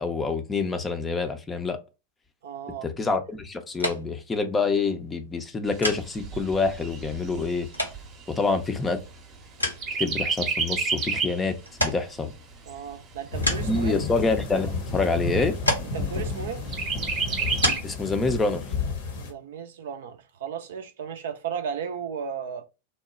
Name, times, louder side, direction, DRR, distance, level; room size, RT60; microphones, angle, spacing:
voice 1, 0.0-1.8 2.8-7.7 8.3-9.0 10.0-12.3 13.6-15.5 17.8-18.6, left 4 dB, 15° left, 0.5 m, -27 dB
voice 2, 2.4-2.9 12.7-14.0 15.9-16.7 19.2-22.6, right 7 dB, 60° right, 0.4 m, -35 dB
light switch wall on off various, 3.7-19.4, left 1 dB, 85° left, 0.7 m, -35 dB
Chirp tweet, 5.7-9.4 9.8-11.5 11.9-12.0 12.4-13.4 14.0-14.1 14.4-14.5 14.9-15.5 16.7-17.8, right 4 dB, 30° right, 0.8 m, -30 dB
sound 1, 13.3-19.3, left 4 dB, 55° left, 0.8 m, -31 dB
2.9 x 2.1 x 4.0 m
figure-of-eight pair, 90°, 0 cm